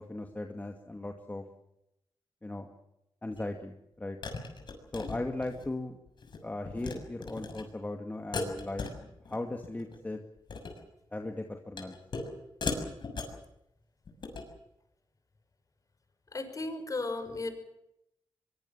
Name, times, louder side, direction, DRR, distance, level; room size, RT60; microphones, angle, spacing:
voice 1, 0.0-1.4 2.4-2.7 3.2-4.2 4.9-6.0 6.4-8.9 9.3-10.2 11.1-12.0, left 2 dB, 20° left, 4 dB, 2.3 m, -37 dB
sound 1, 3.4-3.5 4.2-5.7 6.1-6.4 6.6-6.9 7.2-7.6 8.3-9.4 9.6-10.0 10.4-10.8 11.8-12.3 12.6-13.4 14.0-14.5, left 4 dB, 60° left, 6.7 m, -37 dB
voice 2, 16.3-17.5, left 2 dB, 40° left, 8 dB, 5.8 m, -35 dB
23.5 x 23.0 x 7.4 m, 0.82 s
wide cardioid pair, 105°, 9 cm